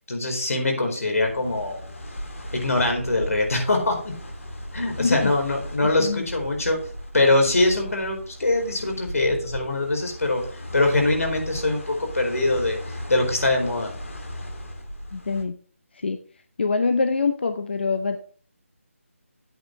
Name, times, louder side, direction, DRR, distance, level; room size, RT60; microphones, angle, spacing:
voice 1, 0.1-1.8 2.5-4.1 4.7-6.8 7.1-10.4 10.7-13.9, left 2 dB, 80° left, 3 dB, 4.4 m, -23 dB
sound 1, 1.0-15.4, equal, 65° left, 2.7 m, -37 dB
voice 2, 5.0-5.3 6.0-6.3 15.1-15.5 15.9-16.2 16.6-18.2, left 4 dB, 50° left, 8 dB, 0.7 m, -24 dB
9.5 x 8.9 x 3.2 m, 0.43 s
figure-of-eight pair, 175°, 8 cm